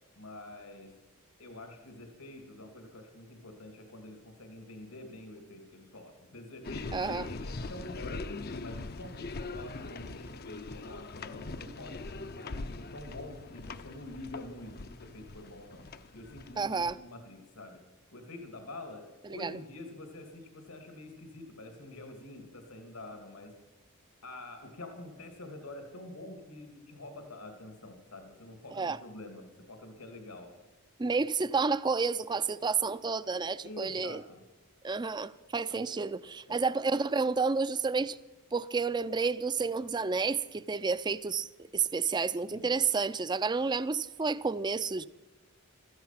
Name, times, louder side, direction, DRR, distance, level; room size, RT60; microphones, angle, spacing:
voice 1, 0.2-0.9 1.4-8.3 8.6-15.8 16.1-17.8 18.1-23.5 24.2-30.5 33.6-34.4 35.7-35.8 36.5-36.6 42.5-42.7, left 2 dB, 85° left, 2.5 m, -47 dB
sound 1, 6.6-16.9, left 3 dB, 45° left, 0.6 m, -41 dB
voice 2, 6.9-7.3 16.6-17.0 19.4-19.5 28.7-29.0 31.0-34.2 34.8-38.2 38.5-41.5 41.7-45.1, right 4 dB, 20° right, 0.4 m, -30 dB
16.0 x 13.5 x 5.8 m
head